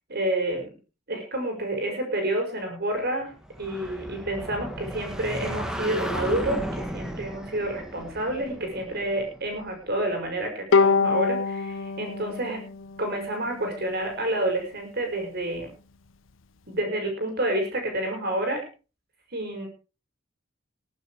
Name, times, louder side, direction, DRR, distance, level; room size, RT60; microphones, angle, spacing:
voice 1, 0.1-0.7 1.1-3.3 3.6-12.6 13.0-15.7 16.7-18.6 19.3-19.7, right 1 dB, 55° right, 3 dB, 6.1 m, -29 dB
sound 1, 3.4-10.0, equal, 5° right, 2.1 m, -35 dB
Bowed string instrument, 10.7-14.0, left 4 dB, 80° left, 0.8 m, -25 dB
21.5 x 9.1 x 4.9 m, 0.35 s
head